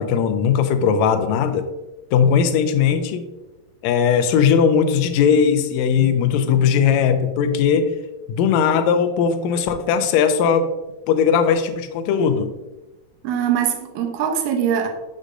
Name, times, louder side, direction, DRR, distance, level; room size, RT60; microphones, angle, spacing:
voice 1, 0.0-1.7 2.1-3.3 3.8-7.9 8.3-10.7 11.1-12.5, left 7 dB, 80° left, 8 dB, 1.6 m, -18 dB
voice 2, 13.2-14.9, right 8 dB, 75° right, 5 dB, 2.0 m, -22 dB
6.4 x 6.4 x 2.5 m, 1.1 s
omnidirectional pair, 3.6 m